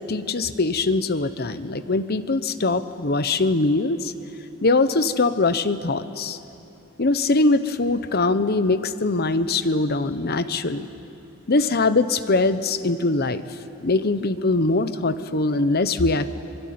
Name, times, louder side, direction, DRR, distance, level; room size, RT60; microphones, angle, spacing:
voice 1, 0.0-4.1 4.6-6.4 7.0-10.9 11.5-13.4 13.8-16.3, left 3 dB, 50° left, 12 dB, 1.0 m, -22 dB
25.0 x 23.0 x 9.5 m, 2.8 s
head